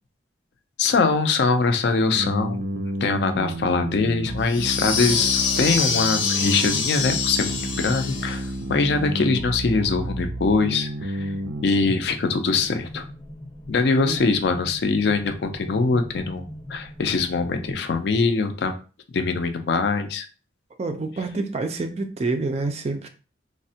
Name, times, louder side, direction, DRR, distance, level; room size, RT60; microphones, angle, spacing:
voice 1, 0.8-11.3 11.6-13.1 13.7-18.8 19.1-20.3, left 4 dB, 60° left, 0.4 m, -23 dB
sound 1, 2.2-11.6, right 1 dB, 90° right, 0.5 m, -31 dB
sound 2, 4.5-8.5, left 5 dB, 90° left, 0.7 m, -25 dB
sound 3, 11.2-17.8, equal, 20° left, 0.7 m, -41 dB
voice 2, 20.8-23.1, right 3 dB, 35° right, 0.3 m, -27 dB
3.3 x 2.1 x 2.7 m
head